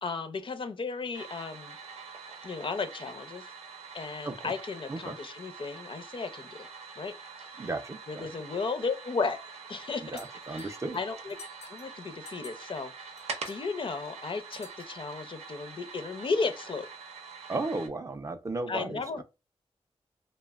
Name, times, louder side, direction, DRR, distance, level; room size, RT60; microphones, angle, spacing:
voice 1, 0.0-1.8 2.4-3.5 3.9-6.7 7.0-7.6 8.1-9.4 9.7-10.1 10.5-11.4 11.6-16.9 18.7-19.2, left 4 dB, 55° left, 0.5 m, -35 dB
sound 1, 1.1-17.9, right 5 dB, 90° right, 0.5 m, -45 dB
voice 2, 7.6-8.3 10.0-11.0 17.5-19.2, right 2 dB, 30° right, 0.4 m, -35 dB
sound 2, 10.2-10.8 11.3-11.9 12.3-12.8 13.2-13.7 14.5-15.0, left 3 dB, 90° left, 1.0 m, -50 dB
3.2 x 2.1 x 2.2 m
wide cardioid pair, 90°, 11 cm